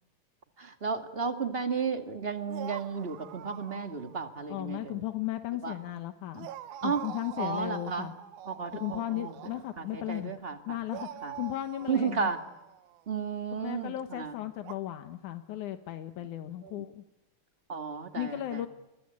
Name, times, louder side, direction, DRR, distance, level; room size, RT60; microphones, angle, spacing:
voice 1, 0.6-5.0 5.6-5.7 6.8-7.0 7.4-8.1 8.5-9.4 9.8-10.8 11.2-11.3 11.9-12.4 13.1-14.3 16.6-16.8 17.7-18.6, right 5 dB, 25° right, 7 dB, 1.7 m, -33 dB
sound 1, 2.5-4.4 4.7-4.8 6.3-10.2 10.9-13.3 14.6-14.8, right 11 dB, 80° right, 2.6 m, -45 dB
voice 2, 4.5-6.5 6.8-8.1 8.7-10.3 10.7-12.3 13.5-17.0 18.2-18.7, left 14 dB, 85° left, 8 dB, 2.6 m, -36 dB
30.0 x 22.5 x 8.7 m, 1.0 s
omnidirectional pair, 3.4 m